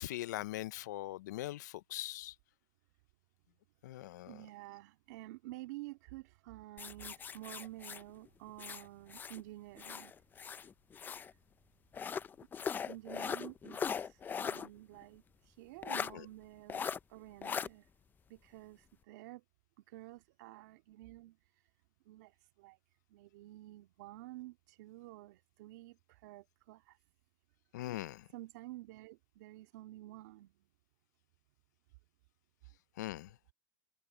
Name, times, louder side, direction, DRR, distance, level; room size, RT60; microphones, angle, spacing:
voice 1, 0.0-2.3 3.8-4.3 16.1-16.3 27.7-28.3 33.0-33.3, left 15 dB, 90° left, 0.5 m, -41 dB
voice 2, 4.3-10.1 12.9-17.9 18.3-19.4 19.9-21.4 22.1-22.8 23.1-27.0 28.3-30.5, right 17 dB, 75° right, 2.3 m, -51 dB
sound 1, 6.8-9.4 9.8-11.3 11.9-14.7 15.0-15.1 15.8-16.1 16.7-17.0 17.4-17.7, left 7 dB, 20° left, 0.5 m, -39 dB
supercardioid pair, 125°, 9 cm